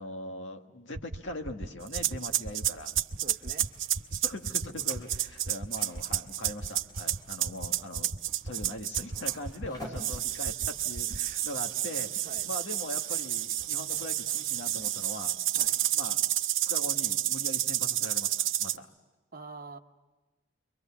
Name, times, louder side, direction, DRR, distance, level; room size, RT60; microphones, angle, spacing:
voice 1, 0.0-3.0 4.1-8.1 8.4-15.4 15.9-16.2 16.6-18.9, left 1 dB, 75° left, 4 dB, 1.8 m, -41 dB
sound 1, 0.9-1.2 1.4-1.7 1.9-2.2 2.4-2.7 2.9-3.2 3.4-3.7 3.9-4.2 4.4-4.7 4.9-5.2 5.4-5.7 5.9-6.2 6.4-6.7 6.9-7.2 7.4-7.7 7.9-8.2 8.4-8.7 8.9-9.2 9.4-9.7 9.9-10.2 10.4-10.7 10.9-11.2, right 1 dB, 70° right, 1.1 m, -37 dB
sound 2, 1.9-9.5 10.0-18.8, right 12 dB, 90° right, 0.9 m, -30 dB
sound 3, 2.9-17.2, equal, 20° left, 4.2 m, -54 dB
voice 2, 3.2-3.7 9.6-10.0 12.2-12.5 15.5-15.8 19.3-19.8, right 3 dB, 45° right, 6 dB, 1.0 m, -45 dB
29.0 x 23.5 x 7.2 m, 1.2 s
head